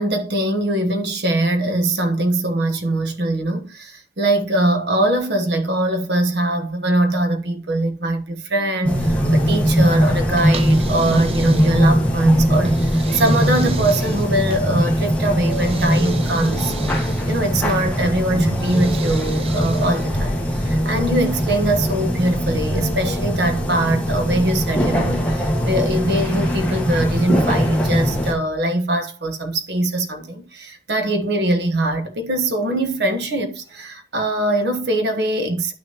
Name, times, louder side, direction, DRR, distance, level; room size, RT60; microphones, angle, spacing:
voice 1, 0.0-35.7, right 1 dB, 65° right, 1.2 m, -22 dB
sound 1, 8.8-28.3, equal, 10° left, 1.5 m, -20 dB
sound 2, 10.4-12.0 12.6-14.7 15.5-17.4 18.6-20.2, right 4 dB, 30° right, 0.5 m, -33 dB
11.0 x 6.3 x 2.9 m
head